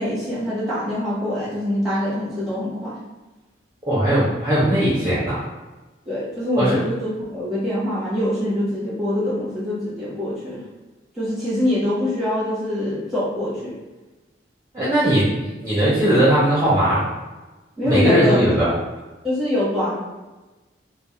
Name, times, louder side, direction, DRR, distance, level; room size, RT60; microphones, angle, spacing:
voice 1, 0.0-3.0 6.0-10.6 11.2-13.8 17.8-18.5 19.2-19.9, left 1 dB, ahead, -10 dB, 1.0 m, -24 dB
voice 2, 3.9-5.4 6.6-6.8 14.7-17.0 17.8-18.7, right 1 dB, 20° right, -10 dB, 0.6 m, -18 dB
2.3 x 2.0 x 2.9 m, 1.1 s
head